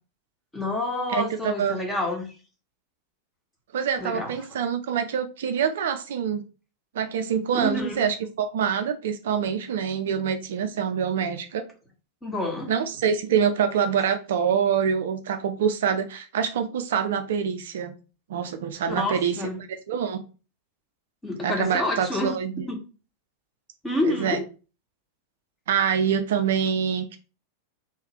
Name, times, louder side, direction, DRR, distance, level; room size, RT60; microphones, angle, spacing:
voice 1, 0.5-2.3 4.0-4.6 7.5-8.0 12.2-12.7 18.9-19.6 21.2-22.4 22.7-22.8 23.8-24.4, left 2 dB, 10° left, 1 dB, 1.4 m, -28 dB
voice 2, 1.1-1.8 3.7-6.4 6.9-11.6 12.7-17.9 18.3-19.3 19.9-20.2 21.4-22.6 24.1-24.4 25.7-27.2, right 7 dB, 60° right, 9 dB, 0.4 m, -25 dB
3.2 x 3.1 x 4.3 m, 0.34 s
figure-of-eight pair, 90°, 0 cm